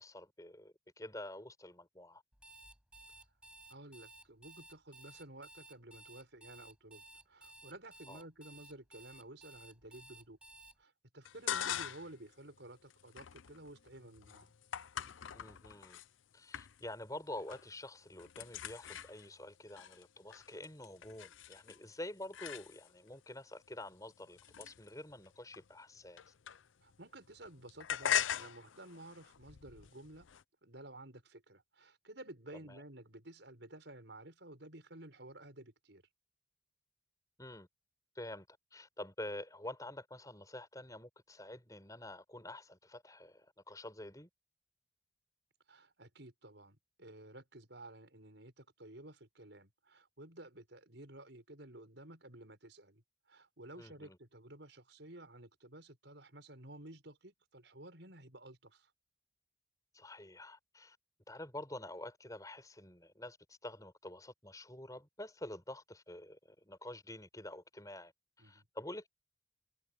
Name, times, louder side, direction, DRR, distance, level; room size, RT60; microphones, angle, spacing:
voice 1, 0.0-2.2 8.1-8.2 15.3-16.0 16.3-26.2 32.5-32.8 37.4-37.7 38.2-44.3 53.7-54.2 59.9-61.0 61.3-68.1 68.4-69.1, left 1 dB, 20° left, 5.7 m, -48 dB
Alarm, 2.3-10.7, right 2 dB, 5° right, 6.9 m, -56 dB
voice 2, 3.7-10.4 10.8-14.5 26.8-30.3 30.6-36.0 45.7-53.0 53.3-58.9 68.4-68.6, right 1 dB, 65° right, 6.2 m, -53 dB
sound 1, 11.2-12.2 12.6-16.1 16.5-17.0 17.3-17.8 18.0-23.1 23.7-27.0 27.2-30.4, left 9 dB, 85° left, 0.6 m, -42 dB
head